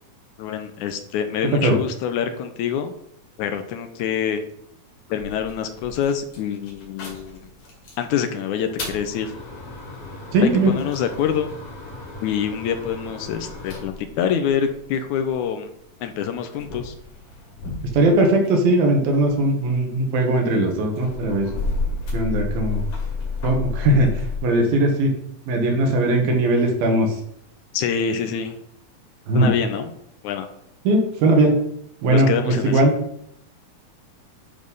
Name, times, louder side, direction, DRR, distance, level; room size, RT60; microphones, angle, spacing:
voice 1, 0.4-2.9 3.4-4.4 5.1-7.4 8.0-9.3 10.4-11.6 12.2-15.7 16.0-16.9 27.7-28.6 29.4-29.9 30.2-30.5 32.1-32.8, left 8 dB, 80° left, 7 dB, 1.8 m, -26 dB
sound 1, 5.2-8.1 8.5-15.3 16.0-18.7 19.0-24.4, left 3 dB, 60° left, 3.9 m, -32 dB
voice 2, 10.3-10.8 17.9-21.5 22.1-22.8 23.4-25.1 25.5-27.2 29.3-29.5 30.9-31.6 32.0-32.9, right 1 dB, 85° right, 2 dB, 3.4 m, -19 dB
10.5 x 4.2 x 5.4 m, 0.72 s
omnidirectional pair, 4.1 m